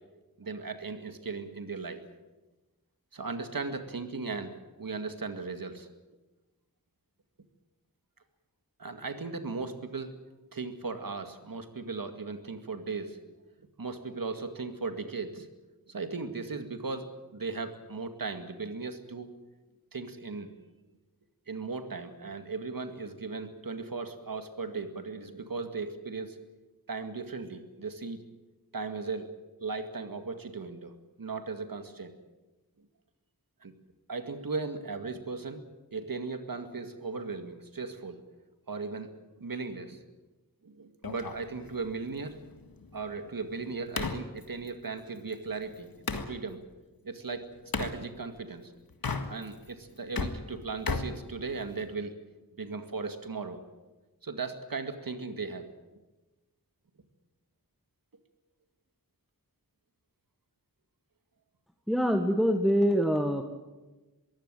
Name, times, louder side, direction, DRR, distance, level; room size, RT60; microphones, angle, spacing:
voice 1, 0.4-2.0 3.1-5.9 8.8-10.2 10.5-13.3 13.8-15.5 15.9-19.3 19.9-20.5 21.5-26.4 26.9-28.2 28.7-29.3 29.6-30.9 31.2-32.1 33.6-33.7 34.1-35.6 35.9-38.2 38.7-39.1 39.4-40.0 40.6-42.4 42.9-46.6 47.0-47.5 47.8-48.8 49.3-52.1 52.6-53.6 54.2-55.7, right 4 dB, 70° right, 7 dB, 2.1 m, -37 dB
sound 1, 41.0-46.3 47.7-48.0 48.9-49.7 50.0-51.9, left 4 dB, 75° left, 1.8 m, -36 dB
voice 2, 61.9-63.4, equal, ahead, 5 dB, 1.5 m, -25 dB
22.5 x 16.0 x 9.1 m, 1.1 s
wide cardioid pair, 80°, 35 cm